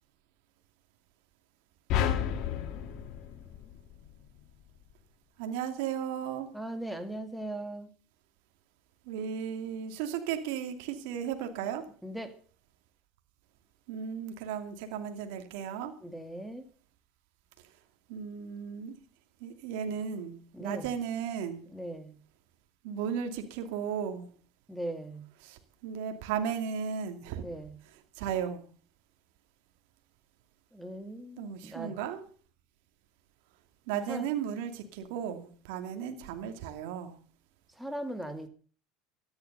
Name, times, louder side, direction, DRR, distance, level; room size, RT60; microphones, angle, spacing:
sound 1, 1.9-4.3, left 9 dB, 60° left, 2.2 m, -31 dB
voice 1, 5.4-6.5 9.1-11.9 13.9-15.9 18.1-18.9 19.4-21.6 22.8-24.3 25.4-27.4 28.2-28.6 31.4-32.2 33.9-37.2, right 8 dB, 75° right, 6 dB, 2.5 m, -35 dB
voice 2, 6.5-7.9 12.0-12.3 16.0-16.7 20.5-20.9 21.7-22.2 24.7-25.3 27.4-27.8 30.7-32.0 34.1-34.2 37.8-38.5, right 1 dB, ahead, 6 dB, 2.3 m, -39 dB
13.5 x 10.5 x 6.8 m, 0.42 s
supercardioid pair, 100°, 0 cm